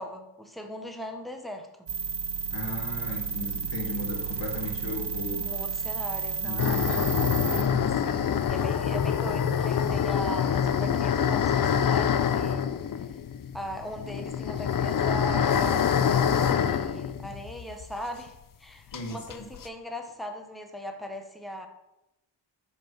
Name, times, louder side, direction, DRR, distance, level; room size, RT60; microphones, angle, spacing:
voice 1, 0.0-1.9 5.3-6.7 8.0-12.6 13.5-21.7, equal, ahead, 4 dB, 0.8 m, -39 dB
sound 1, 1.9-7.7, right 6 dB, 70° right, 0.9 m, -32 dB
voice 2, 2.5-5.5 6.4-7.1 7.5-8.0 18.9-19.5, left 2 dB, 80° left, 0 dB, 1.8 m, -36 dB
sound 2, 6.6-18.0 18.3-18.4 18.9-19.7, left 8 dB, 50° left, 0.4 m, -26 dB
5.9 x 5.4 x 4.6 m, 0.90 s
wide cardioid pair, 100°, 43 cm